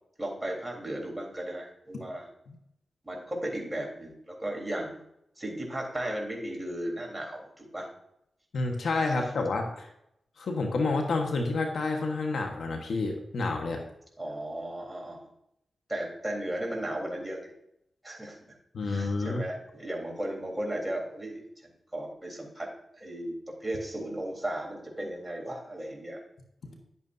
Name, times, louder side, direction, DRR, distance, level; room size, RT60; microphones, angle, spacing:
voice 1, 0.2-2.3 3.0-5.0 5.4-7.9 14.2-15.3 15.9-17.5 18.0-18.6 18.8-22.7 22.9-26.2 26.6-26.8, right 1 dB, 10° right, -1 dB, 3.6 m, -35 dB
voice 2, 8.5-9.9 10.4-13.8 18.7-19.4, left 3 dB, 75° left, 3 dB, 1.3 m, -29 dB
11.0 x 8.4 x 2.7 m, 0.78 s
cardioid pair, 45°, 0 cm